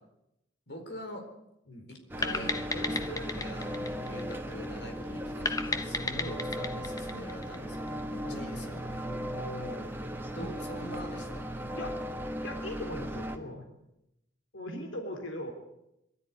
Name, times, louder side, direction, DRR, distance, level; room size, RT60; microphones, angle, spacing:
voice 1, 0.7-1.3 1.9-9.1 10.3-11.5, equal, 60° left, 3 dB, 4.4 m, -44 dB
sound 1, 2.1-13.4, equal, 10° right, 1.6 m, -37 dB
sound 2, 2.2-4.8 5.5-8.0, left 3 dB, 20° left, 0.9 m, -34 dB
voice 2, 9.3-10.0 11.7-12.0 12.4-13.7 14.5-15.5, left 1 dB, 90° left, 3 dB, 3.5 m, -40 dB
23.0 x 13.0 x 9.6 m, 0.85 s
head